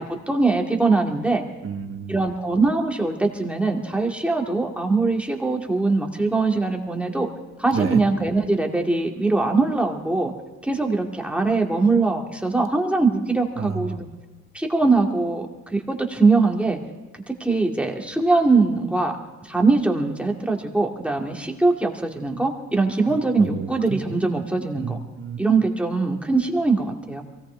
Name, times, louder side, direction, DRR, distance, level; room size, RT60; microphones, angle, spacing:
voice 1, 0.0-1.4 2.1-7.3 7.6-10.3 10.6-14.1 14.5-15.5 15.9-16.8 17.3-19.1 19.4-25.0 25.4-27.2, right 3 dB, 5° right, 1 dB, 2.2 m, -22 dB
voice 2, 1.6-2.1 7.7-8.0 13.6-14.0 23.0-24.0 24.8-25.4, right 6 dB, 45° right, 5 dB, 1.7 m, -30 dB
23.0 x 17.5 x 3.4 m, 1.2 s
cardioid pair, 90°, 30 cm